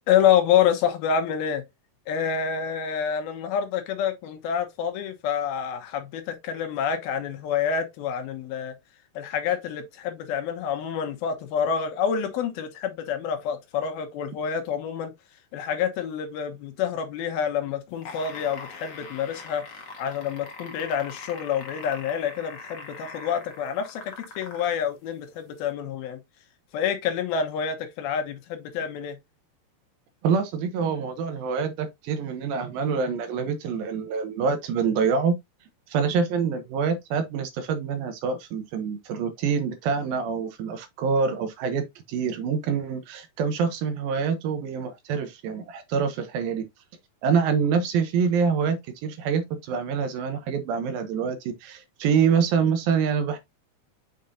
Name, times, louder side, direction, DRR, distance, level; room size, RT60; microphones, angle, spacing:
voice 1, 0.1-1.6 2.1-8.7 9.2-15.1 15.5-19.6 20.0-26.2 26.7-29.2, left 8 dB, 75° left, 2.8 m, -27 dB
sound 1, 17.9-24.8 25.7-25.8, left 4 dB, 50° left, 2.0 m, -42 dB
voice 2, 30.2-35.4 35.9-46.6 47.2-53.4, right 6 dB, 75° right, 2.5 m, -26 dB
6.6 x 5.4 x 2.7 m
omnidirectional pair, 4.5 m